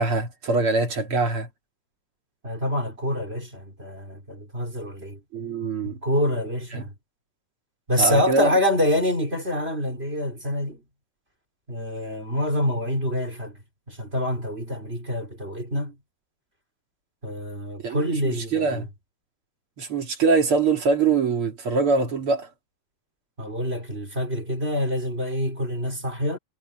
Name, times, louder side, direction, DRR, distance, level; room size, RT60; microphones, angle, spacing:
voice 1, 0.0-1.5 5.3-6.0 6.7-6.8 8.0-8.5 17.8-18.9 19.8-22.5, right 4 dB, 40° right, 3.0 m, -23 dB
voice 2, 2.4-5.2 5.8-6.9 7.9-10.8 11.7-13.6 13.9-16.0 17.2-18.9 23.4-26.4, left 1 dB, 15° right, 4.3 m, -26 dB
omnidirectional pair, 4.4 m